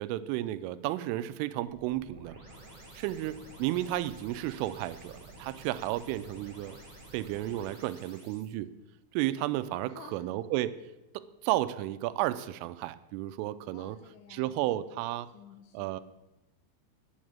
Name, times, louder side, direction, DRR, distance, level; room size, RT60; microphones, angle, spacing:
voice 1, 0.0-2.4 3.0-6.7 7.1-8.7 9.1-10.7 11.1-14.0 14.3-15.3 15.7-16.0, right 15 dB, 90° right, 13 dB, 3.1 m, -33 dB
sound 1, 1.7-8.5, right 1 dB, 40° right, 0.5 m, -51 dB
voice 2, 9.8-10.3 13.7-15.0 15.3-16.0, left 9 dB, 85° left, 6 dB, 2.9 m, -53 dB
10.0 x 6.4 x 8.7 m, 0.99 s
omnidirectional pair, 5.6 m